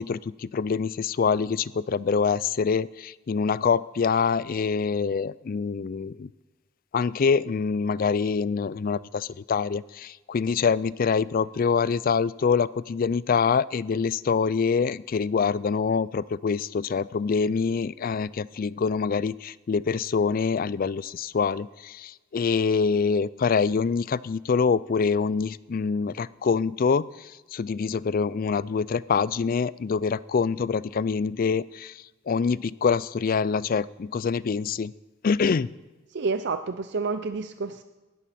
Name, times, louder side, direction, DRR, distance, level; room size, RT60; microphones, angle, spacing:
voice 1, 0.0-6.3 6.9-31.9 32.3-34.9 35.2-35.7, left 5 dB, 45° left, 20 dB, 0.4 m, -25 dB
voice 2, 36.1-37.8, right 4 dB, 55° right, 10 dB, 0.5 m, -29 dB
19.0 x 13.5 x 4.3 m, 1.2 s
head